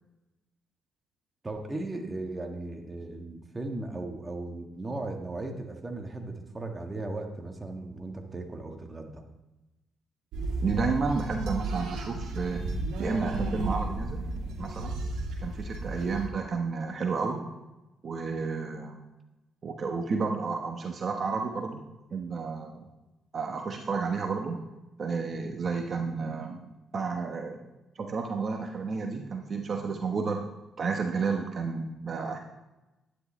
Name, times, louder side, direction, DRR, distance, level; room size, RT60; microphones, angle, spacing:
voice 1, 1.4-9.2 15.8-16.1, right 2 dB, 25° right, 3 dB, 1.6 m, -37 dB
sound 1, 10.3-16.3, right 2 dB, 90° right, 2.4 m, -33 dB
voice 2, 10.6-12.6 13.0-14.3 14.6-15.0 15.4-17.4 18.0-19.0 19.6-21.8 22.1-22.9 23.3-24.6 25.0-26.6 26.9-27.6 27.9-30.4 30.8-32.4, right 4 dB, 45° right, 3 dB, 1.2 m, -31 dB
12.0 x 10.0 x 3.3 m, 1.0 s
cardioid pair, 90°, 0 cm